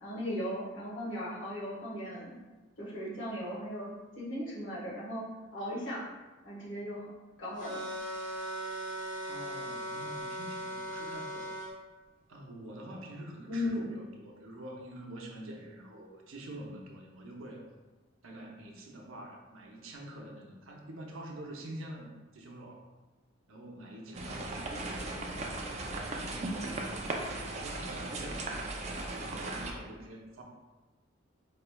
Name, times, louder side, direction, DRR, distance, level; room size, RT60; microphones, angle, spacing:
voice 1, 0.0-2.3 2.8-5.2 5.5-6.0 6.4-7.1 7.4-7.8 13.5-13.9, left 1 dB, 70° left, -6 dB, 1.4 m, -37 dB
sound 1, 7.6-11.7, right 1 dB, 40° left, 0.9 m, -38 dB
voice 2, 9.3-11.6 12.3-17.6 18.2-22.8 23.5-30.4, right 1 dB, 90° right, 0 dB, 0.7 m, -46 dB
sound 2, 24.1-29.7, right 2 dB, 35° right, 0.4 m, -37 dB
4.8 x 3.2 x 2.3 m, 1.2 s
head